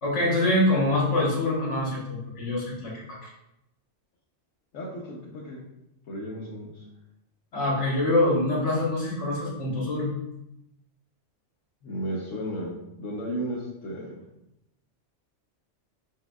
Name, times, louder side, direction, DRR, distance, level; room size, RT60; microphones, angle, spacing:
voice 1, 0.0-3.3 7.5-10.1, left 1 dB, 65° left, -3 dB, 1.7 m, -25 dB
voice 2, 4.7-5.6 6.1-6.9 11.8-14.2, equal, 80° left, -4 dB, 1.1 m, -34 dB
4.9 x 4.6 x 2.3 m, 0.85 s
omnidirectional pair, 1.3 m